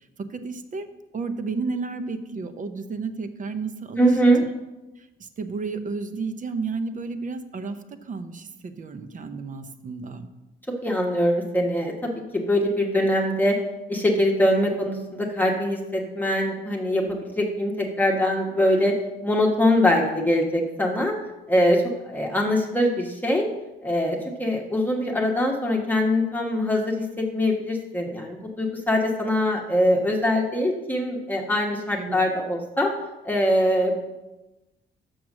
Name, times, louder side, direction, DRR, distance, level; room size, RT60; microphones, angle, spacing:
voice 1, 0.2-0.9 1.1-4.5 5.0-10.3 32.0-32.2, right 4 dB, 40° right, 10 dB, 0.8 m, -32 dB
voice 2, 4.0-4.4 10.8-13.6 13.9-18.9 19.2-21.1 21.5-23.5 23.8-32.9 33.2-34.1, left 1 dB, 10° left, -1 dB, 1.2 m, -23 dB
6.4 x 6.0 x 6.1 m, 1.0 s
cardioid pair, 90°, 20 cm